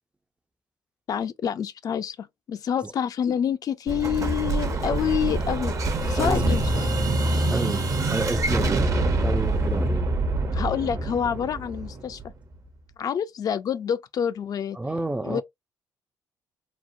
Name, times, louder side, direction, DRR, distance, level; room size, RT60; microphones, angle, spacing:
voice 1, 1.1-5.7 6.0-6.9 10.5-12.2 13.0-14.8 15.3-15.4, left 8 dB, 55° left, 0.4 m, -27 dB
Explosion, 3.9-12.5, right 2 dB, 45° right, 0.7 m, -25 dB
voice 2, 6.2-6.6 7.5-10.1 14.7-15.4, right 2 dB, 15° right, 0.4 m, -30 dB
2.9 x 2.0 x 2.5 m
supercardioid pair, 60°, 8 cm